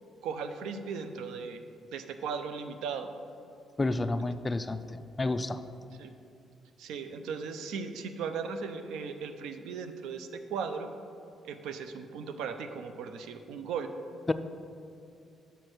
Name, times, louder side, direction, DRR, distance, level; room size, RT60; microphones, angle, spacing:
voice 1, 0.2-1.6 1.9-3.1 6.0-6.1 6.8-10.9 11.4-13.9, right 5 dB, 90° right, 8 dB, 0.5 m, -37 dB
voice 2, 3.8-5.6 14.3-14.4, left 2 dB, 25° left, 11 dB, 0.3 m, -30 dB
6.3 x 4.4 x 6.5 m, 2.5 s
cardioid pair, 90°, 0 cm